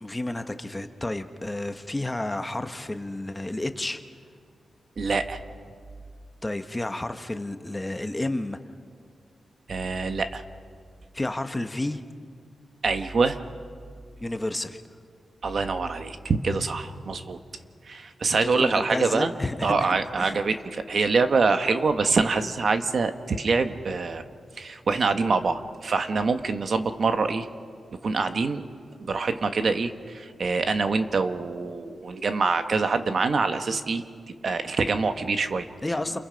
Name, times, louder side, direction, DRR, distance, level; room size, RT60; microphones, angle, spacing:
voice 1, 0.0-4.0 6.4-8.6 11.1-12.0 14.2-14.8 18.4-19.9 20.2-20.4 35.8-36.2, left 1 dB, 15° left, 8 dB, 1.0 m, -31 dB
voice 2, 5.0-5.4 9.7-10.4 12.8-13.4 15.4-17.4 17.9-19.3 19.6-24.2 24.6-27.5 28.0-28.6 29.0-34.0 34.4-35.7, right 4 dB, 50° right, 8 dB, 1.2 m, -25 dB
28.5 x 28.5 x 5.2 m, 2.1 s
wide cardioid pair, 145°, 0 cm